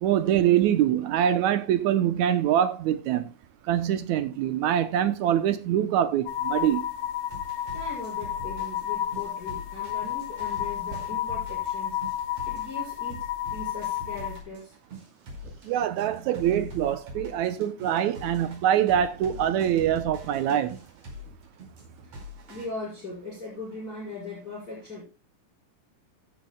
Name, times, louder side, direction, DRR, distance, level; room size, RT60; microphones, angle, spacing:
voice 1, 0.0-3.3 3.7-6.8 15.7-20.8, right 10 dB, 75° right, 2.0 m, -24 dB
sound 1, 6.3-14.4, left 11 dB, 80° left, 3.0 m, -32 dB
sound 2, 7.2-22.7, left 1 dB, 50° right, 6.0 m, -44 dB
voice 2, 7.7-12.0 12.4-13.3 13.5-14.7 22.5-25.0, left 2 dB, 25° left, 6.0 m, -39 dB
sound 3, 10.8-11.4 11.9-12.0 14.4-14.5 15.3-17.2 18.3-18.4 18.8-21.1, right 3 dB, 25° right, 2.1 m, -47 dB
15.0 x 11.0 x 2.2 m
omnidirectional pair, 3.7 m